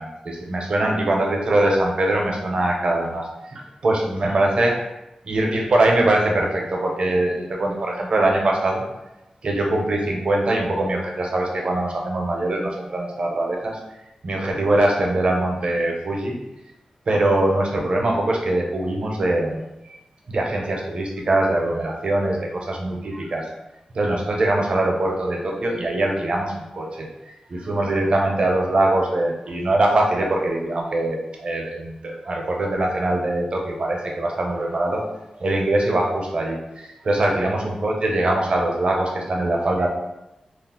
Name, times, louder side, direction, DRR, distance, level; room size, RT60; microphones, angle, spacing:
voice 1, 0.0-4.7 5.3-8.8 9.4-13.8 14.2-16.4 17.1-19.6 19.9-20.0 20.3-23.5 23.9-27.1 27.5-35.0 35.4-39.9, right 1 dB, 55° right, 0 dB, 0.5 m, -22 dB
2.3 x 2.0 x 3.6 m, 0.93 s
wide cardioid pair, 145°, 2 cm